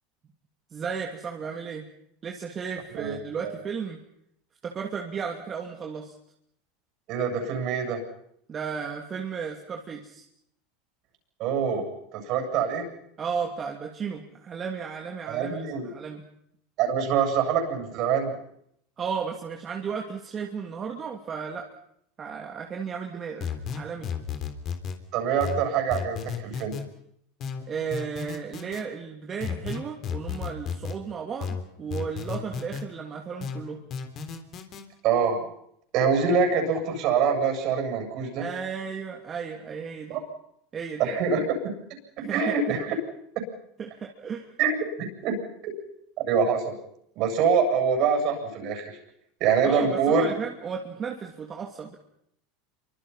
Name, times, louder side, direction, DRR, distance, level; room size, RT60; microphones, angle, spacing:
voice 1, 0.7-1.9 2.2-4.0 4.6-6.1 8.5-10.2 13.2-16.2 19.0-21.7 22.2-24.1 27.7-33.8 38.4-40.2 40.7-41.2 42.2-43.0 43.8-44.5 49.6-52.0, right 6 dB, 30° right, 2 dB, 2.9 m, -34 dB
voice 2, 2.9-3.6 7.1-8.0 11.4-11.8 12.1-12.9 15.3-15.9 16.8-18.4 25.1-26.7 35.0-35.4 35.9-38.5 40.1-40.2 41.0-41.4 42.3-42.9 44.6-45.3 45.6-45.7 46.2-46.7 47.2-49.0 49.4-50.3, right 6 dB, 55° right, 4 dB, 7.9 m, -25 dB
sound 1, 23.4-25.0 25.4-26.9 27.4-28.8 29.4-31.0 31.4-32.9 33.4-34.8, left 7 dB, 45° left, 3.7 m, -33 dB
28.0 x 25.0 x 5.8 m, 0.72 s
hypercardioid pair, 95°, 0 cm